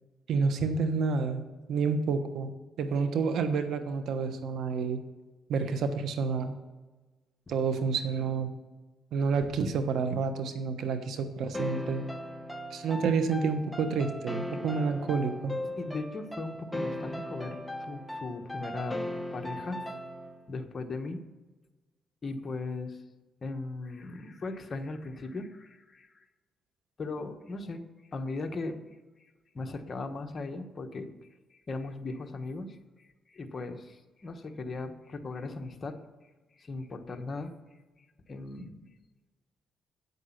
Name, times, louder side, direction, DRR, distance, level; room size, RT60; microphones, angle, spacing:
voice 1, 0.3-1.4 1.7-2.5 2.8-5.0 5.5-6.5 7.5-8.5 9.1-12.0 12.7-15.6, right 5 dB, 75° right, 8 dB, 1.2 m, -29 dB
sound 1, 11.5-20.4, left 1 dB, ahead, 1.1 m, -38 dB
voice 2, 15.7-19.0 19.3-19.8 20.5-21.2 22.2-23.0 23.4-26.3 27.0-27.8 28.1-29.0 29.5-31.1 31.5-36.0 36.5-37.5 38.3-38.9, left 3 dB, 35° left, 6 dB, 1.2 m, -38 dB
9.3 x 8.3 x 5.9 m, 1.2 s
cardioid pair, 90°, 0 cm